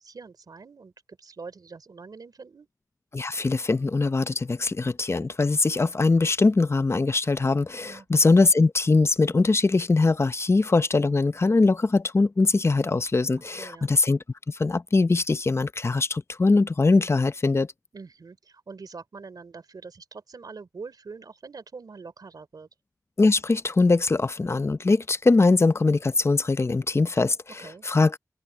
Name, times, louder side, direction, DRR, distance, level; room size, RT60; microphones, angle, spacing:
voice 1, 0.0-2.7 7.8-8.1 13.3-13.9 17.9-22.7 27.6-27.9, right 4 dB, 75° right, 3.6 m, -44 dB
voice 2, 3.1-14.2 14.5-17.7 23.2-28.2, left 3 dB, 40° left, 0.7 m, -22 dB
wide cardioid pair, 70°, 7 cm